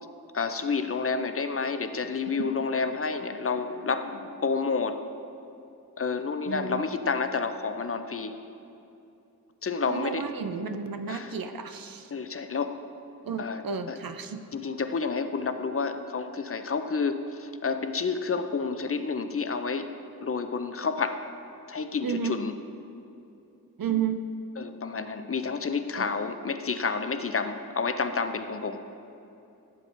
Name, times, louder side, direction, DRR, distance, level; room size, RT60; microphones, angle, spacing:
voice 1, 0.3-5.0 6.0-8.3 9.6-10.2 11.1-11.3 12.1-12.8 13.4-13.6 13.9-14.0 14.5-19.9 20.2-21.2 21.7-22.5 24.6-28.8, left 4 dB, 40° left, 9 dB, 0.4 m, -29 dB
voice 2, 6.5-6.9 9.9-12.1 13.2-14.4 22.0-22.4 23.8-24.2 26.0-26.1, right 7 dB, 70° right, 8 dB, 0.5 m, -32 dB
12.0 x 6.8 x 2.5 m, 2.8 s
wide cardioid pair, 55°, 36 cm